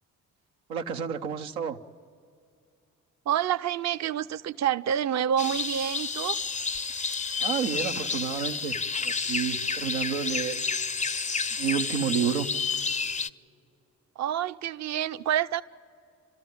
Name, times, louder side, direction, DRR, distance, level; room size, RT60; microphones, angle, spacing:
voice 1, 0.7-1.8 7.4-8.8 9.0-10.6 11.5-12.5, right 8 dB, 90° right, 0.8 m, -30 dB
voice 2, 3.3-6.4 14.2-15.6, right 10 dB, 45° right, 0.6 m, -28 dB
sound 1, 5.4-13.3, left 5 dB, 20° left, 0.5 m, -30 dB
29.0 x 13.0 x 9.4 m
hypercardioid pair, 50°, 38 cm